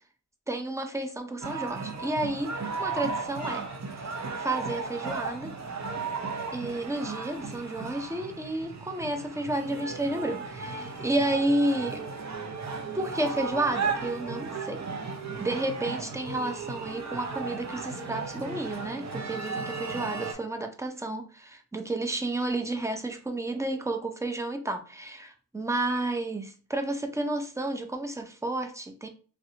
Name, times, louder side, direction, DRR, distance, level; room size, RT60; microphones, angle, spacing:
voice 1, 0.5-2.5 2.8-3.7 4.4-5.6 6.5-12.0 12.9-14.9 15.4-29.1, right 1 dB, 10° right, 0.4 m, -31 dB
sound 1, 1.4-20.3, right 4 dB, 55° right, 0.6 m, -35 dB
3.2 x 2.5 x 2.9 m
wide cardioid pair, 85°, 33 cm